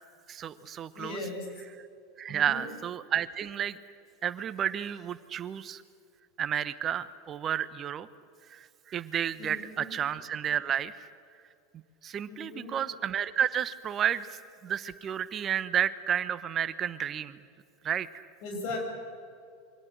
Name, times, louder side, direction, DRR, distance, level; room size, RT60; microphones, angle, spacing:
voice 1, 0.3-1.2 2.2-3.8 4.2-5.8 6.4-8.1 8.5-11.1 12.0-17.4 17.8-18.2, right 9 dB, 30° right, 15 dB, 1.0 m, -31 dB
voice 2, 0.9-1.5 2.3-2.7 9.4-9.9 12.3-12.7 18.4-18.8, left 2 dB, 55° left, 2 dB, 7.1 m, -38 dB
28.0 x 24.5 x 6.5 m, 2.5 s
figure-of-eight pair, 80°, 0 cm